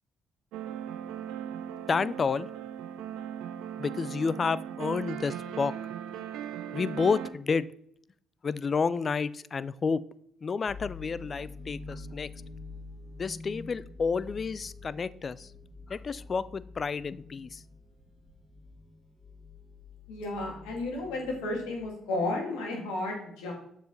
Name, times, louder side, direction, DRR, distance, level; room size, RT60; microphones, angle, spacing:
sound 1, 0.5-7.3, right 9 dB, 80° right, 0.5 m, -38 dB
voice 1, 1.9-2.5 3.8-5.7 6.7-7.7 8.4-10.0 10.4-12.3 13.2-15.5 15.9-17.6, left 5 dB, 45° left, 18 dB, 0.3 m, -30 dB
sound 2, 10.7-21.9, left 3 dB, 10° right, 1.7 m, -47 dB
voice 2, 20.1-23.5, left 2 dB, 80° left, 0 dB, 2.0 m, -33 dB
6.9 x 4.8 x 3.9 m, 0.71 s
hypercardioid pair, 55°, 0 cm